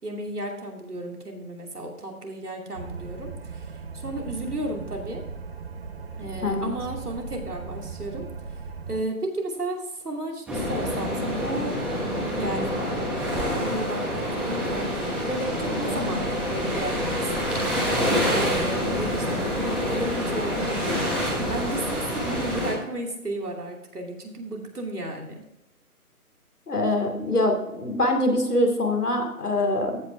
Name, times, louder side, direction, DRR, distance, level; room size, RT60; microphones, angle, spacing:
voice 1, 0.0-5.2 6.2-8.3 8.9-11.8 12.3-12.8 13.5-17.7 18.3-25.4, right 1 dB, 85° right, 1 dB, 2.9 m, -33 dB
sound 1, 2.7-9.0, right 5 dB, 40° right, 0.8 m, -38 dB
sound 2, 10.5-22.7, equal, 5° right, 1.1 m, -27 dB
voice 2, 26.7-30.0, left 1 dB, 90° left, 3 dB, 2.6 m, -24 dB
15.0 x 5.8 x 3.3 m, 0.85 s
figure-of-eight pair, 150°, 45 cm